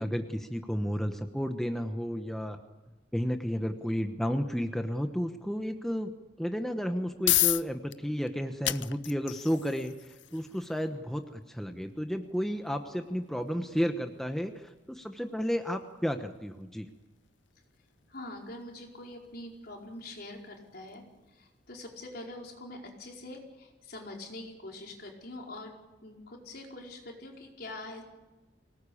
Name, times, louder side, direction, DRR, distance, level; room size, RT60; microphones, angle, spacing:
voice 1, 0.0-2.6 3.1-6.1 6.4-16.9, equal, ahead, 5 dB, 1.0 m, -32 dB
sound 1, 6.8-21.6, left 15 dB, 80° left, 0.7 m, -37 dB
voice 2, 18.1-21.0 21.3-25.7 26.0-28.0, left 2 dB, 55° left, 0 dB, 4.8 m, -44 dB
24.5 x 19.0 x 8.6 m, 1.1 s
head